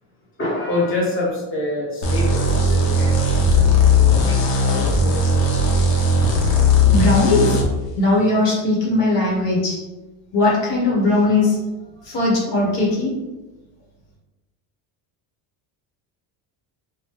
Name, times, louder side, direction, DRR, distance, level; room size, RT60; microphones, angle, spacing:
voice 1, 0.4-5.4, left 2 dB, 25° left, -4 dB, 1.0 m, -27 dB
sound 1, 2.0-7.7, left 2 dB, 90° left, 0.8 m, -17 dB
voice 2, 6.9-7.6 8.0-9.8 10.3-11.6 12.0-13.1, left 2 dB, 65° left, -4 dB, 1.2 m, -18 dB
3.0 x 2.2 x 3.1 m, 1.1 s
cardioid pair, 120°, 47 cm